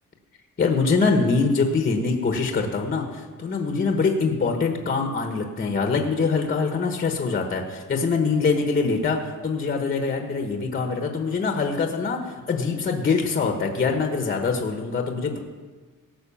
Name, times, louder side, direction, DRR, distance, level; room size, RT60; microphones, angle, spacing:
voice 1, 0.6-15.4, left 4 dB, 25° left, 3 dB, 1.2 m, -24 dB
17.5 x 6.2 x 7.2 m, 1.4 s
cardioid pair, 165°, 32 cm